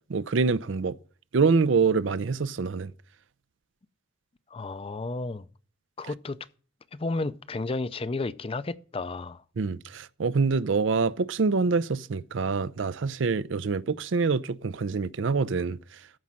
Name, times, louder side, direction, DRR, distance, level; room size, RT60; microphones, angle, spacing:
voice 1, 0.1-1.0 1.3-2.9 9.6-15.8, right 4 dB, 75° right, 0.5 m, -25 dB
voice 2, 4.5-5.5 6.0-6.4 6.9-9.4, left 3 dB, 30° left, 0.5 m, -32 dB
14.0 x 5.3 x 7.4 m
head